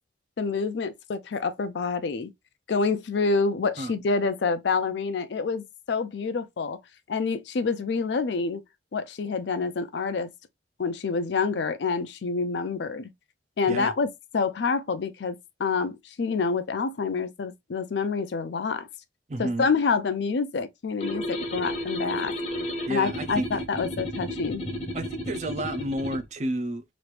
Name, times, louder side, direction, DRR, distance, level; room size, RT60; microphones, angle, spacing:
voice 1, 0.4-2.3 2.7-6.8 7.1-8.6 8.9-10.3 10.8-13.1 13.6-18.9 19.4-22.3 22.9-24.6, left 4 dB, 70° left, 0.4 m, -27 dB
voice 2, 19.3-19.7 22.9-23.5 24.9-26.8, right 1 dB, 40° right, 0.4 m, -30 dB
sound 1, 21.0-26.2, equal, 35° left, 0.7 m, -33 dB
3.0 x 2.5 x 3.0 m
head